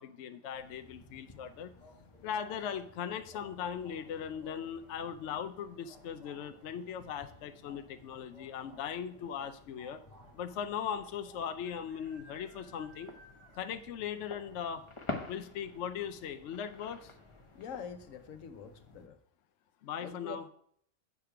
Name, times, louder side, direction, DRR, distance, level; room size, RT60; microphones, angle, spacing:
voice 1, 0.0-1.7 2.2-10.0 10.3-13.1 13.5-14.8 15.3-17.1 19.8-20.5, left 8 dB, 70° left, 8 dB, 0.9 m, -39 dB
sound 1, 0.5-19.1, left 3 dB, 25° left, 0.9 m, -51 dB
sound 2, 1.4-11.8, equal, 35° right, 2.2 m, -61 dB
sound 3, 4.1-4.5 6.4-6.7 7.0-7.1 7.3-7.9 8.6-8.7 8.9-9.0 10.6-10.7 11.6-13.9 14.3-14.4 14.8-14.9 15.4-15.5, right 2 dB, 60° right, 3.4 m, -60 dB
voice 2, 17.5-19.2 20.0-20.5, left 7 dB, 85° left, 8 dB, 1.2 m, -45 dB
8.2 x 5.0 x 5.7 m, 0.65 s
omnidirectional pair, 1.3 m